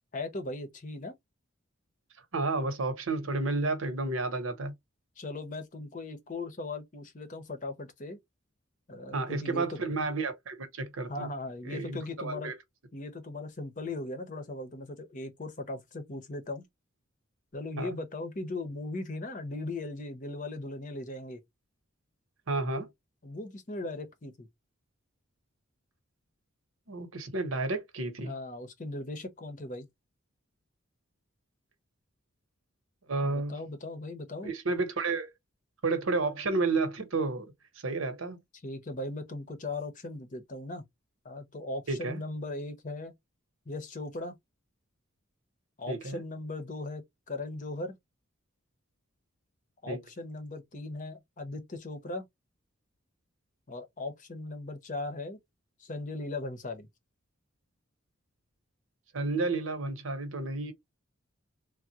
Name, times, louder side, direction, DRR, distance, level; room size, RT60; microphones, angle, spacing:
voice 1, 0.1-1.2 5.2-8.2 8.9-9.8 11.1-12.5 12.9-16.7 17.5-21.4 23.2-24.5 28.2-29.9 33.2-34.5 38.6-40.9 41.2-43.1 43.7-44.3 45.8-48.0 49.8-52.2 53.7-55.4 55.8-56.9, left 2 dB, 40° left, 0.7 m, -38 dB
voice 2, 2.3-4.7 9.1-11.3 11.6-12.5 17.8-17.9 22.5-22.9 26.9-28.3 33.1-33.6 34.4-35.3 35.8-37.5 37.8-38.4 41.9-42.2 45.9-46.2 49.9-50.0 59.1-60.7, right 3 dB, 80° right, 1.0 m, -31 dB
3.5 x 2.1 x 2.7 m
head